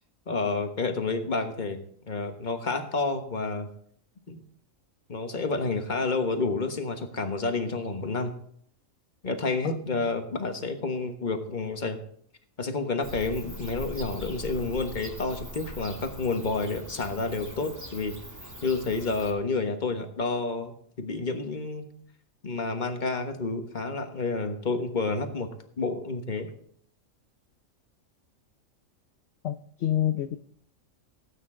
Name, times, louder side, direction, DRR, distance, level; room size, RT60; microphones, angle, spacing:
voice 1, 0.3-1.8 2.0-3.7 4.3-4.4 5.1-8.3 9.2-12.0 12.6-18.1 18.6-21.8 22.4-25.5 25.8-26.5, left 3 dB, 35° left, 6 dB, 1.4 m, -29 dB
Bird / Cricket, 13.0-19.3, equal, 15° right, 2.0 m, -41 dB
voice 2, 29.4-30.4, left 12 dB, 60° left, 9 dB, 0.8 m, -27 dB
17.5 x 9.0 x 3.8 m, 0.63 s
omnidirectional pair, 1.4 m